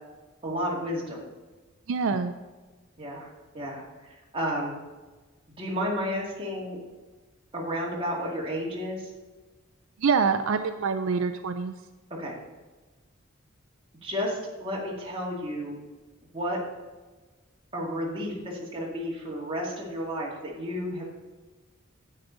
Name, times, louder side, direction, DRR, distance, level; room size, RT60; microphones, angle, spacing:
voice 1, 0.4-1.3 3.0-3.3 3.5-4.7 5.5-6.8 7.5-9.1 12.2-12.3 14.0-15.8 16.3-16.6 17.7-21.0, equal, 25° right, -4 dB, 2.1 m, -32 dB
voice 2, 1.9-2.4 10.0-11.7, right 5 dB, 70° right, 9 dB, 0.4 m, -25 dB
9.6 x 8.3 x 3.9 m, 1.2 s
head